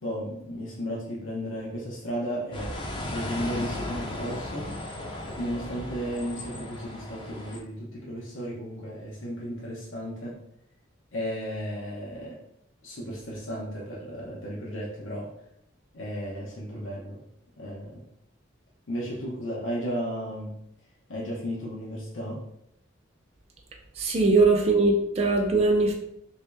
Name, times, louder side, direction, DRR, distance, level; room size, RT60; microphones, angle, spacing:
voice 1, 0.0-2.8 3.0-4.7 5.4-10.4 11.1-12.4 12.8-15.3 15.9-17.2 17.6-18.0 18.9-20.5 21.1-22.4, equal, 85° left, -4 dB, 0.8 m, -34 dB
sound 1, 2.5-7.6, left 1 dB, 25° left, 0.4 m, -36 dB
voice 2, 24.0-25.9, right 3 dB, 30° right, 0 dB, 0.4 m, -21 dB
3.1 x 2.7 x 3.4 m, 0.76 s
head